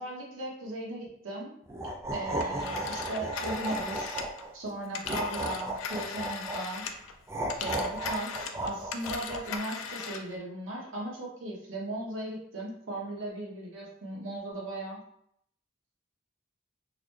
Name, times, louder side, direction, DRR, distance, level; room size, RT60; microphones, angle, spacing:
voice 1, 0.0-1.5 2.1-4.2 4.5-6.9 7.6-15.0, right 1 dB, 80° right, -4 dB, 1.1 m, -37 dB
sound 1, 1.7-4.5 5.0-6.7 7.3-9.6, right 1 dB, 15° right, 0.3 m, -34 dB
Telephone, 2.4-7.1 7.4-10.3, left 6 dB, 80° left, 0.4 m, -39 dB
3.9 x 2.1 x 3.1 m, 0.73 s
head